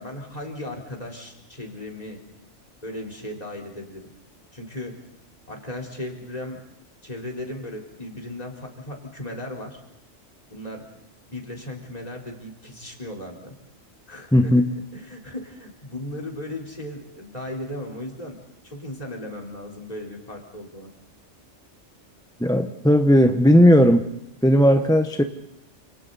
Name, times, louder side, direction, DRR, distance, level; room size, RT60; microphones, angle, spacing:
voice 1, 0.0-2.2 2.8-4.1 4.5-4.9 5.5-6.6 7.0-9.8 10.5-10.9 11.3-13.5 14.1-14.6 14.9-18.4 18.6-20.9, left 1 dB, 35° left, 2 dB, 4.2 m, -36 dB
voice 2, 14.3-14.6 22.4-24.1 24.4-25.2, equal, 5° left, 6 dB, 0.9 m, -16 dB
29.5 x 27.5 x 4.1 m, 0.84 s
omnidirectional pair, 1.2 m